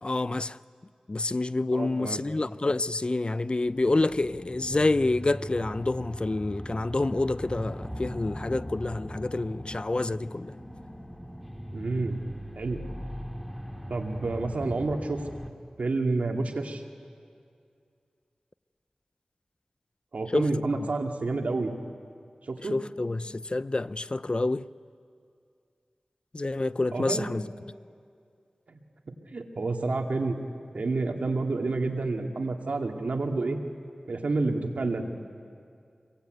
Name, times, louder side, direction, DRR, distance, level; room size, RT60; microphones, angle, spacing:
voice 1, 0.0-0.6 1.1-10.5 20.3-20.5 20.7-20.9 22.7-24.6 26.3-27.5, left 2 dB, 45° left, 0.6 m, -28 dB
voice 2, 1.7-2.2 11.7-12.2 12.6-12.8 13.9-15.2 15.8-16.8 20.1-21.7 22.4-22.7 26.9-27.3 28.7-28.8 29.3-30.4 30.7-33.6 34.1-35.1, right 3 dB, 80° right, 2.3 m, -29 dB
sound 1, 3.6-15.5, equal, ahead, 2.1 m, -39 dB
27.5 x 23.0 x 9.3 m
cardioid pair, 40°, 2 cm